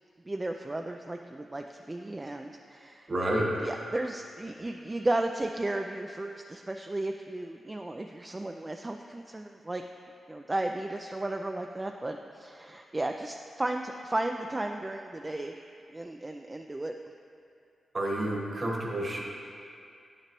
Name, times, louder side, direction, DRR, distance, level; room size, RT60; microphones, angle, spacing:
voice 1, 0.3-3.1 3.6-9.8 10.3-15.5 15.9-16.9, right 2 dB, 25° right, 4 dB, 0.3 m, -34 dB
voice 2, 3.1-3.5 17.9-19.2, right 1 dB, 45° right, -1 dB, 1.3 m, -29 dB
9.5 x 5.8 x 3.0 m, 2.5 s
cardioid pair, 60°, 0 cm